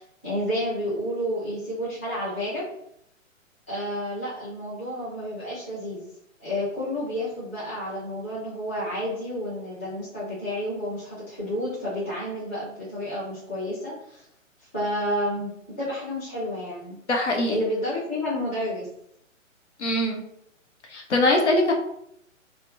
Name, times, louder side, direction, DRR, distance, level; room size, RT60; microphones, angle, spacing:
voice 1, 0.0-2.6 3.7-6.1 6.4-14.2 14.7-17.0 17.5-18.9, left 1 dB, 10° left, -12 dB, 0.4 m, -30 dB
voice 2, 17.1-17.6 19.8-20.2 20.9-21.7, left 1 dB, 60° left, 1 dB, 0.7 m, -22 dB
3.4 x 2.0 x 2.5 m, 0.73 s
figure-of-eight pair, 125°, 40 cm